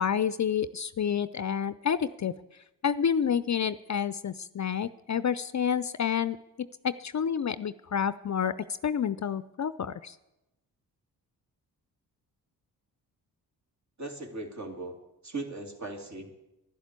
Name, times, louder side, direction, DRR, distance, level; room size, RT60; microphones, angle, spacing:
voice 1, 0.0-2.3 2.8-8.5 8.8-10.2, left 8 dB, 45° left, 15 dB, 0.5 m, -29 dB
voice 2, 14.0-15.0 15.2-16.3, right 2 dB, 40° right, 3 dB, 2.9 m, -38 dB
11.5 x 11.0 x 8.2 m, 0.94 s
cardioid pair, 55°, 41 cm